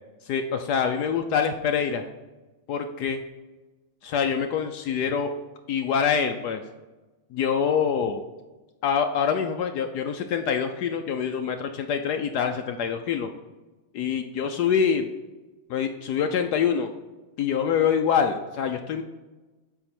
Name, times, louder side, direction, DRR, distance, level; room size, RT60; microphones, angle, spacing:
voice 1, 0.2-2.0 2.7-3.2 4.0-5.3 5.7-6.6 7.3-8.2 8.8-13.3 13.9-15.1 15.7-16.9 17.4-19.0, left 7 dB, 85° left, 5 dB, 0.9 m, -25 dB
7.7 x 4.6 x 4.3 m, 1.2 s
omnidirectional pair, 2.3 m